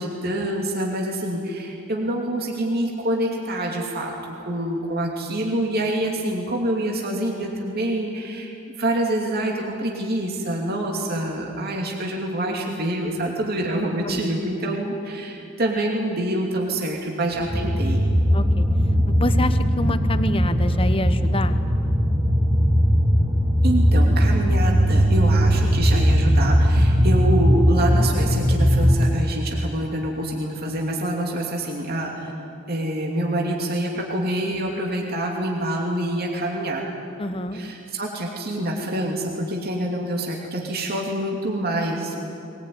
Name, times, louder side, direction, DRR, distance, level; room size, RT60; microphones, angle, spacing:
voice 1, 0.0-18.0 23.6-32.3 32.7-36.8 37.5-42.2, right 1 dB, 45° right, -1 dB, 2.8 m, -26 dB
sound 1, 17.4-29.0, equal, 25° right, 2.1 m, -19 dB
voice 2, 18.3-18.7 19.1-21.6 37.2-37.6, left 1 dB, 25° left, 10 dB, 1.1 m, -26 dB
22.0 x 20.0 x 9.6 m, 2.7 s
head